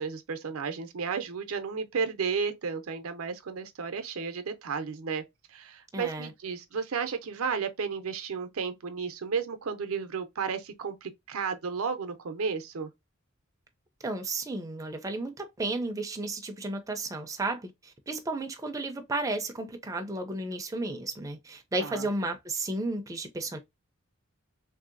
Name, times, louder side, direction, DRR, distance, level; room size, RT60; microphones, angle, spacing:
voice 1, 0.0-5.2 5.5-12.9 21.8-22.1, right 5 dB, 85° right, 0.5 m, -33 dB
voice 2, 5.9-6.3 14.0-23.6, right 2 dB, 15° right, 0.4 m, -33 dB
3.2 x 2.6 x 2.4 m
head